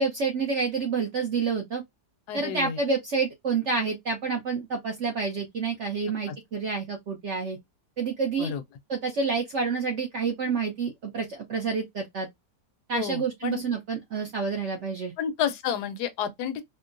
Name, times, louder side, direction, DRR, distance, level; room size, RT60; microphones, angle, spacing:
voice 1, 0.0-1.8 2.3-7.6 8.0-8.5 8.9-12.3 12.9-15.1, right 4 dB, 60° right, 0.8 m, -28 dB
voice 2, 2.3-2.8 6.3-6.4 8.4-8.6 12.9-13.6 15.2-16.6, left 8 dB, 80° left, 1.2 m, -30 dB
4.3 x 2.0 x 2.5 m
omnidirectional pair, 1.7 m